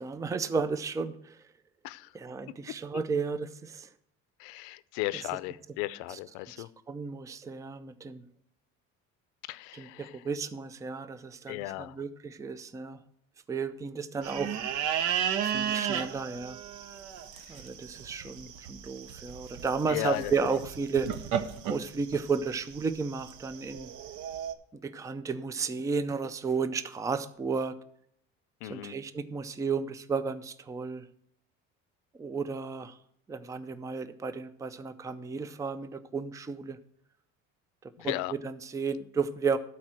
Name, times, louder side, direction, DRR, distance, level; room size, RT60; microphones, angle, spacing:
voice 1, 0.0-1.4 2.1-3.9 6.1-6.2 6.6-8.2 9.7-13.0 13.5-14.6 15.4-16.6 17.5-21.1 21.6-23.9 24.8-27.7 28.6-31.0 32.2-33.0 33.3-36.8 38.0-39.6, right 5 dB, 10° right, 13 dB, 0.4 m, -33 dB
voice 2, 4.4-6.7 9.5-10.1 11.5-11.9 19.9-20.3 28.6-28.9 38.0-38.3, left 18 dB, 90° left, 17 dB, 0.5 m, -35 dB
sound 1, 14.2-24.5, right 9 dB, 65° right, 0.8 m, -34 dB
12.0 x 4.3 x 6.1 m, 0.69 s
cardioid pair, 120°, 32 cm